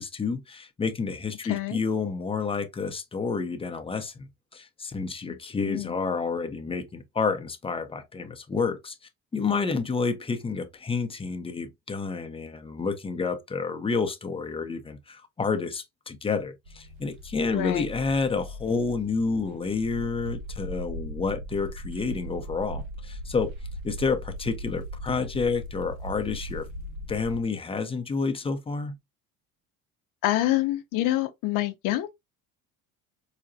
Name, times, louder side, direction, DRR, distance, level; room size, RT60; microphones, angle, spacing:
voice 1, 0.0-9.0 9.3-23.5 23.8-26.7 27.1-29.0, left 4 dB, 15° left, 0.6 m, -29 dB
voice 2, 1.5-1.8 5.3-5.4 5.6-6.0 17.5-17.9 30.2-32.1, left 15 dB, 75° left, 0.6 m, -27 dB
sound 1, 16.7-27.4, equal, 75° right, 0.9 m, -39 dB
4.8 x 2.1 x 2.6 m
cardioid pair, 120°, 33 cm